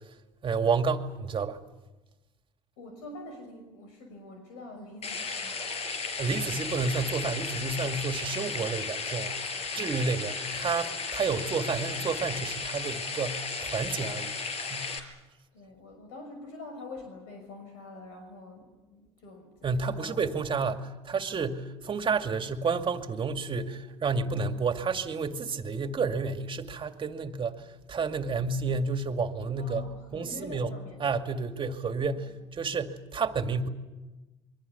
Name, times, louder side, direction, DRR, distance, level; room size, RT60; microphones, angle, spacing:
voice 1, 0.4-1.6 6.2-14.4 14.7-14.9 19.6-29.9 30.1-30.7 31.0-33.7, right 4 dB, 35° right, 2.3 m, -30 dB
voice 2, 2.8-5.6 6.0-6.2 9.5-10.2 15.5-20.2 21.3-21.4 24.1-24.4 29.6-31.0 32.1-32.3, left 2 dB, 75° left, 6.1 m, -46 dB
sound 1, 5.0-15.0, left 4 dB, 45° left, 5.2 m, -35 dB
27.5 x 23.5 x 7.1 m
hypercardioid pair, 80°, 15 cm